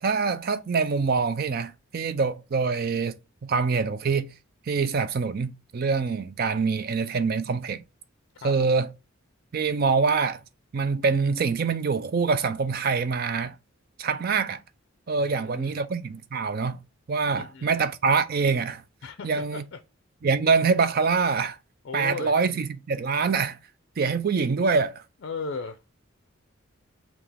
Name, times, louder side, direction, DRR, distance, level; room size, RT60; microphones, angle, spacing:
voice 1, 0.0-3.2 3.4-4.3 4.7-7.8 8.4-8.9 9.5-10.4 10.7-13.5 14.0-14.6 15.1-16.8 17.1-18.8 19.2-19.6 20.2-21.6 21.9-23.6 24.0-25.0, right 5 dB, 45° right, 0.4 m, -25 dB
voice 2, 8.4-8.7 15.2-15.8 17.3-17.7 19.0-19.8 21.8-22.4 25.2-25.8, left 4 dB, 55° left, 0.4 m, -36 dB
5.8 x 2.4 x 3.4 m
head